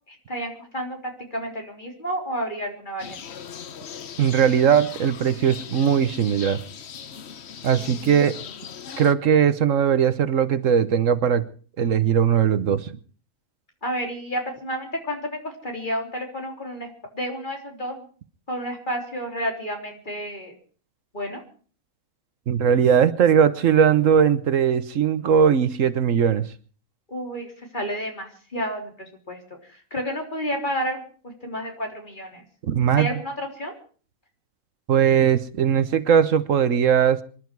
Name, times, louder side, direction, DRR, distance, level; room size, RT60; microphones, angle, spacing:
voice 1, 0.1-3.2 7.7-8.3 13.8-18.1 18.5-20.5 21.1-21.4 27.1-29.4 29.7-32.4 32.9-33.8, equal, 35° left, 2 dB, 3.8 m, -31 dB
sound 1, 3.0-9.1, left 7 dB, 55° left, 1.1 m, -39 dB
voice 2, 4.2-6.6 7.6-8.3 9.0-11.4 11.8-13.0 22.5-26.4 32.6-33.1 34.9-37.2, right 8 dB, 70° right, 14 dB, 1.3 m, -19 dB
26.0 x 11.5 x 4.6 m, 0.41 s
omnidirectional pair, 1.4 m